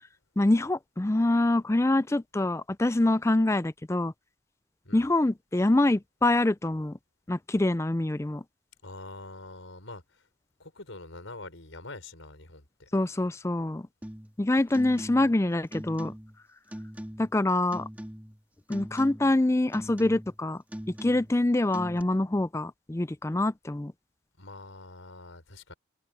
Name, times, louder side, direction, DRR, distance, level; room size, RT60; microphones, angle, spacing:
voice 1, 0.4-4.1 4.9-7.0 7.3-8.4 12.9-13.9 14.4-16.1 17.2-17.9 18.7-20.6 21.0-23.9, left 2 dB, 15° left, 0.4 m, -25 dB
voice 2, 8.8-10.3 10.6-12.9 24.4-25.7, left 2 dB, 85° left, 5.2 m, -45 dB
sound 1, 14.0-14.4 14.7-15.4 15.7-16.4 16.7-17.4 17.7-18.4 18.7-19.4 19.7-20.4 20.7-21.4 21.7-22.0, equal, 10° right, 1.7 m, -41 dB
head